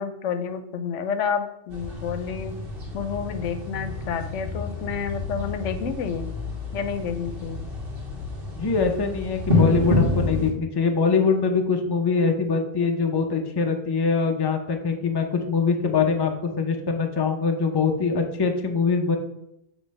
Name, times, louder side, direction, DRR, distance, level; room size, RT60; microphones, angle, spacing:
voice 1, 0.0-2.5 2.9-6.3 6.7-7.6, left 6 dB, 85° left, 9 dB, 1.0 m, -29 dB
sound 1, 1.7-10.5, left 2 dB, 50° right, 1.6 m, -28 dB
voice 2, 8.6-19.2, left 5 dB, 30° left, 4 dB, 0.5 m, -23 dB
7.4 x 3.1 x 5.3 m, 0.82 s
omnidirectional pair, 1.2 m